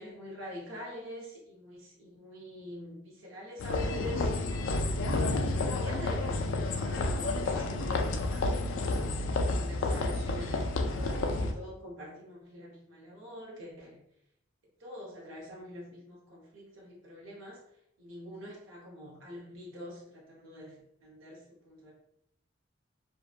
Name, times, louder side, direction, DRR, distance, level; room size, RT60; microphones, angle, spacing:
voice 1, 0.0-4.8 5.3-9.0 9.5-14.0 14.8-17.6 18.0-20.8 21.0-21.9, equal, 85° right, -4 dB, 0.9 m, -45 dB
sound 1, 3.6-11.5, left 2 dB, 85° left, 0.3 m, -30 dB
2.6 x 2.1 x 2.4 m, 0.77 s
head